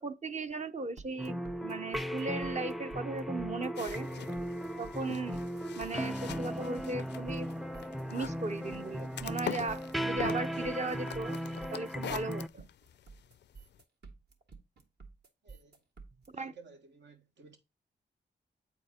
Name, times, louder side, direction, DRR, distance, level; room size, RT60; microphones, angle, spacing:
voice 1, 0.0-4.1 4.8-5.4 5.7-7.5 8.1-11.4 11.7-12.7 16.4-16.5, right 3 dB, 40° right, 0.6 m, -37 dB
disturbed nest, 1.0-16.3, right 4 dB, 70° right, 1.7 m, -52 dB
sound 1, 1.2-12.5, equal, ahead, 0.4 m, -37 dB
sound 2, 3.7-13.8, left 10 dB, 70° left, 0.4 m, -45 dB
voice 2, 15.4-15.8 16.3-17.6, right 4 dB, 85° right, 1.5 m, -55 dB
8.4 x 4.5 x 4.2 m
cardioid pair, 60°, 18 cm